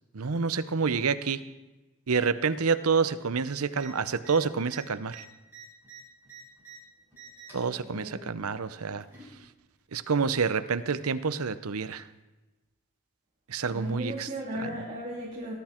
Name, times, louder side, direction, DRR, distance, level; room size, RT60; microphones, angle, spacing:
voice 1, 0.1-1.4 2.1-5.2 7.5-9.0 9.9-12.0 13.5-14.3 14.6-14.7, right 5 dB, 90° right, 13 dB, 0.8 m, -28 dB
sound 1, 3.7-3.9 4.2-4.4 4.6-6.8 7.1-7.7 8.7-9.3 10.4-10.5, right 5 dB, 10° right, 6.2 m, -48 dB
voice 2, 7.5-8.2 13.7-15.5, equal, 30° right, -6 dB, 3.1 m, -36 dB
19.5 x 12.0 x 4.5 m, 1.1 s
head